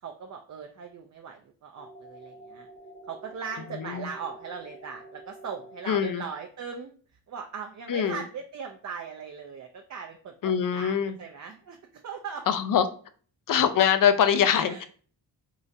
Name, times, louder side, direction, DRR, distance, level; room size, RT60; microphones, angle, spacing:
voice 1, 0.0-2.7 3.1-6.9 7.3-11.8 12.0-12.5 14.7-14.8, right 6 dB, 45° right, 3 dB, 0.5 m, -39 dB
sound 1, 1.8-5.8, right 1 dB, 80° left, 1.3 m, -48 dB
voice 2, 3.7-4.1 5.9-6.2 7.9-8.2 10.4-11.1 12.5-12.9 13.5-14.8, left 8 dB, 55° left, 10 dB, 0.5 m, -23 dB
3.8 x 2.1 x 2.6 m, 0.42 s
cardioid pair, 55°, 42 cm